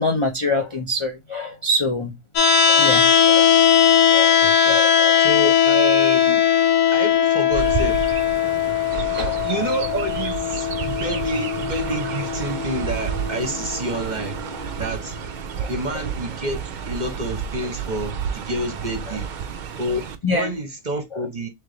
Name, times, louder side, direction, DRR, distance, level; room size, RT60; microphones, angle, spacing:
voice 1, 0.0-2.1 2.7-3.5 4.1-5.2 9.1-9.6 15.6-15.7 19.1-19.2 20.2-20.5 21.1-21.3, left 2 dB, 50° left, 0.3 m, -25 dB
sound 1, 2.4-14.4, left 8 dB, 80° left, 1.3 m, -19 dB
voice 2, 4.4-4.8 5.2-6.5 6.9-8.1 9.4-14.4 14.8-15.2 15.7-19.3 19.8-21.5, right 1 dB, 40° right, 0.8 m, -28 dB
Chirp tweet, 7.5-20.2, right 7 dB, 70° right, 0.4 m, -30 dB
3.2 x 3.2 x 3.8 m
omnidirectional pair, 1.5 m